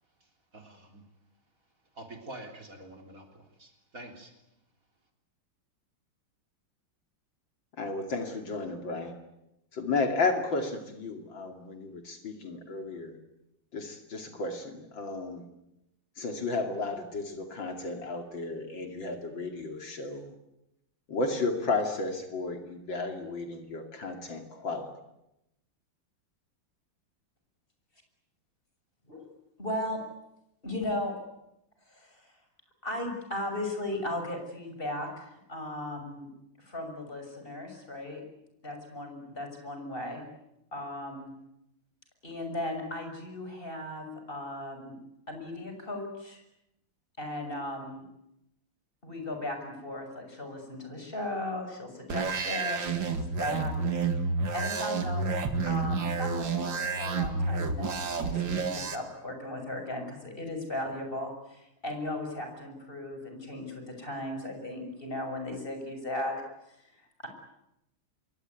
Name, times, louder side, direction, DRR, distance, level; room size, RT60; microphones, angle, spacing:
voice 1, 0.2-1.0 1.9-4.4, right 1 dB, 40° right, 3 dB, 3.9 m, -47 dB
voice 2, 7.8-9.1 9.7-13.2 13.7-15.4 16.2-20.3 21.1-24.9, left 3 dB, 65° left, 5 dB, 3.3 m, -33 dB
voice 3, 29.6-30.0 30.6-31.1 31.9-32.3 32.8-36.3 36.6-38.2 38.6-40.2 40.7-41.4 42.2-45.0 45.3-46.4 47.2-48.0 49.0-53.0 53.4-53.7 54.5-66.4, left 1 dB, 25° left, 4 dB, 6.7 m, -36 dB
sound 1, 52.1-58.9, right 4 dB, 65° right, 2.8 m, -30 dB
27.0 x 23.0 x 9.5 m, 0.86 s
omnidirectional pair, 2.2 m